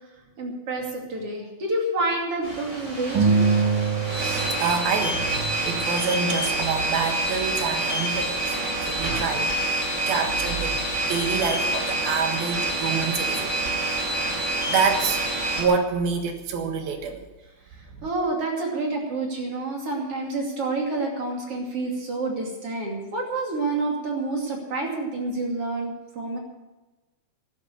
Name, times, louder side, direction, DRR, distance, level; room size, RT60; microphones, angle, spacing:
voice 1, 0.4-3.4 9.0-9.2 18.0-26.4, right 2 dB, 40° right, 0 dB, 3.2 m, -28 dB
sound 1, 2.4-15.6, right 1 dB, 20° right, 4.0 m, -27 dB
sound 2, 3.2-5.8, right 5 dB, 60° right, 3.5 m, -24 dB
voice 2, 4.2-8.4 8.8-9.5 9.9-13.6 14.7-15.2 15.6-17.3, right 5 dB, 75° right, 5 dB, 3.4 m, -27 dB
13.5 x 11.5 x 6.8 m, 1.1 s
omnidirectional pair, 4.3 m